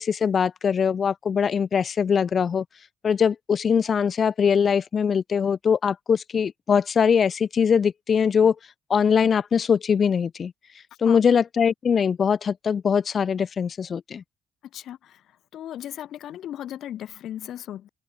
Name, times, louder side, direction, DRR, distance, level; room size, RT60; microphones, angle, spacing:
voice 1, 0.0-2.6 3.0-8.5 8.9-10.5 11.0-14.2, left 7 dB, 45° left, 2.6 m, -22 dB
voice 2, 14.7-15.2 15.5-17.9, left 11 dB, 70° left, 5.6 m, -36 dB
cardioid pair, 110°, 0 cm